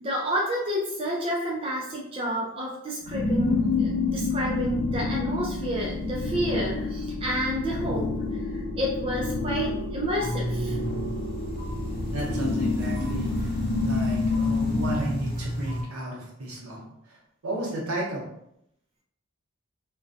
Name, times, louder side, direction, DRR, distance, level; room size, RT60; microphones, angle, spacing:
voice 1, 0.0-8.1 8.5-10.8, equal, 25° right, -3 dB, 0.4 m, -29 dB
sound 1, 3.0-15.0, left 3 dB, 70° left, 0.5 m, -28 dB
sound 2, 10.2-15.8, equal, 45° left, 0.8 m, -33 dB
voice 2, 12.1-13.5 13.8-17.2 17.4-18.3, right 1 dB, 85° right, -2 dB, 0.8 m, -33 dB
2.5 x 2.2 x 2.5 m, 0.76 s
head